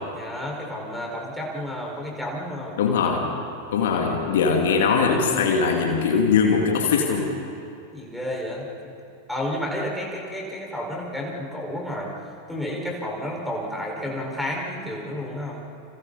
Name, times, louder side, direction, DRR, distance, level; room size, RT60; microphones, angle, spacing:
voice 1, 0.1-2.8 7.9-8.7 9.3-12.1 12.5-15.6, left 1 dB, ahead, -3 dB, 5.2 m, -31 dB
voice 2, 2.8-3.4 3.7-7.3, left 5 dB, 55° left, 1 dB, 2.6 m, -21 dB
30.0 x 29.0 x 4.2 m, 2.6 s
figure-of-eight pair, 90°, 0 cm